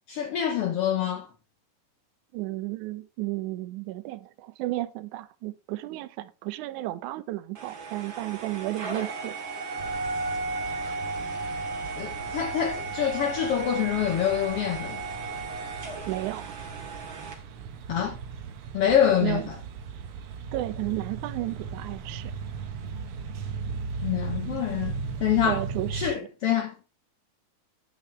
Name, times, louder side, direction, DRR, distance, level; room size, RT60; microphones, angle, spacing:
voice 1, 0.1-1.3 12.0-15.0 17.9-18.2 18.7-19.5 24.0-25.6 25.9-26.9, left 9 dB, 70° left, 1.6 m, -26 dB
voice 2, 2.3-9.4 16.1-16.5 19.2-19.5 20.5-22.4 25.5-26.3, right 17 dB, 80° right, 2.1 m, -33 dB
sound 1, 7.6-17.3, right 3 dB, 40° right, 2.6 m, -35 dB
sound 2, 9.8-26.1, right 5 dB, 60° right, 1.6 m, -38 dB
10.5 x 8.6 x 3.3 m
omnidirectional pair, 3.5 m